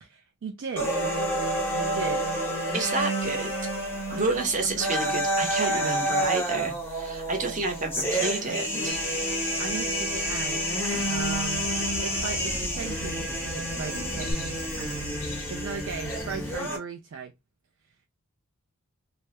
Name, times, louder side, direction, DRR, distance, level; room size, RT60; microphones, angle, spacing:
voice 1, 0.0-1.0 1.7-2.4 4.1-5.2 5.5-6.0 9.6-10.8 11.1-17.3, right 6 dB, 60° right, 0.3 m, -37 dB
sound 1, 0.8-16.8, right 1 dB, 10° left, 0.7 m, -29 dB
voice 2, 2.7-3.5 4.1-9.0, right 3 dB, 35° right, 0.7 m, -30 dB
sound 2, 8.9-14.3, equal, 85° right, 0.8 m, -43 dB
sound 3, 11.5-16.6, left 2 dB, 65° left, 0.5 m, -40 dB
2.2 x 2.0 x 2.8 m
head